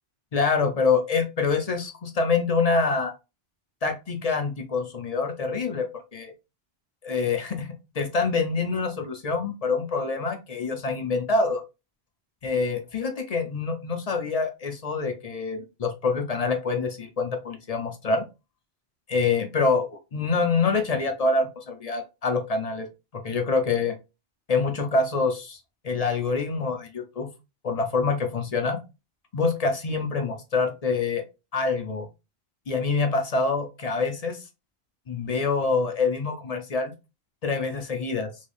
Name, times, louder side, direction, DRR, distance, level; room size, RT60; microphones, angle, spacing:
voice 1, 0.3-3.1 3.8-6.3 7.0-7.7 8.0-11.6 12.4-18.2 19.1-22.9 23.1-24.0 24.5-25.6 25.8-27.3 27.6-28.8 29.3-31.2 31.5-32.1 32.7-34.4 35.1-36.9 37.4-38.3, left 4 dB, 45° left, 6 dB, 0.6 m, -26 dB
3.2 x 3.1 x 2.5 m, 0.26 s
omnidirectional pair, 1.1 m